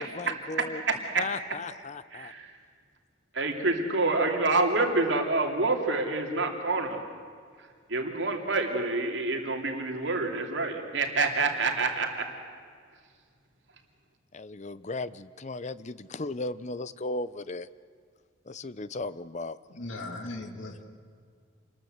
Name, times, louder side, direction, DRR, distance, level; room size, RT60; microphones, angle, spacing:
voice 1, 0.0-0.8 1.2-2.3 14.3-17.7 18.5-19.6, left 2 dB, 35° left, 16 dB, 0.7 m, -36 dB
voice 2, 0.9-1.2 2.1-2.6 3.3-7.0 7.6-12.3, right 3 dB, 65° right, 3 dB, 3.0 m, -27 dB
voice 3, 19.7-20.9, left 2 dB, 90° left, 4 dB, 2.3 m, -38 dB
27.5 x 21.5 x 8.0 m, 2.1 s
head